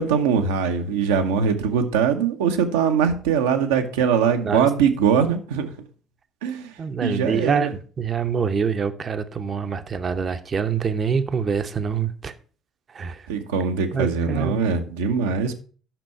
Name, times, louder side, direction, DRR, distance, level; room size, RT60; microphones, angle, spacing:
voice 1, 0.0-5.7 6.4-6.7 7.0-7.7 13.3-15.5, right 6 dB, 70° right, 0.9 m, -22 dB
voice 2, 6.8-7.7 8.0-12.3 12.9-13.2 13.9-14.7, right 6 dB, 40° right, 0.8 m, -25 dB
9.0 x 6.1 x 4.6 m
figure-of-eight pair, 55°, 0 cm